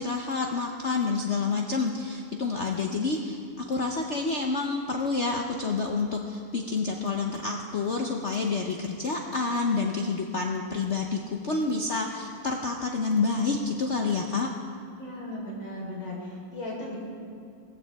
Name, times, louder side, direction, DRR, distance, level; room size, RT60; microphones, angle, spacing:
voice 1, 0.0-14.5, left 4 dB, 80° left, 2 dB, 0.6 m, -28 dB
voice 2, 15.0-17.0, left 1 dB, 60° left, -4 dB, 4.7 m, -36 dB
19.0 x 15.5 x 3.5 m, 2.5 s
omnidirectional pair, 2.4 m